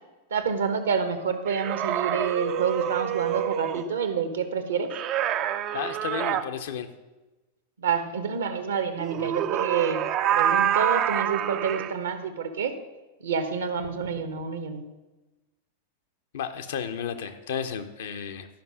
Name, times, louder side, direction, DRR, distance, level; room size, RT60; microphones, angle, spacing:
voice 1, 0.3-4.9 7.8-10.0 10.3-12.7 13.2-14.9, right 6 dB, 65° right, 9 dB, 0.9 m, -28 dB
sound 1, 1.5-3.9 4.9-6.4 9.0-11.9, right 10 dB, 35° right, 0.4 m, -27 dB
voice 2, 5.7-6.9 9.2-9.3 16.3-18.5, left 8 dB, 60° left, 8 dB, 0.7 m, -33 dB
12.0 x 5.4 x 6.1 m, 1.1 s
figure-of-eight pair, 90°, 0 cm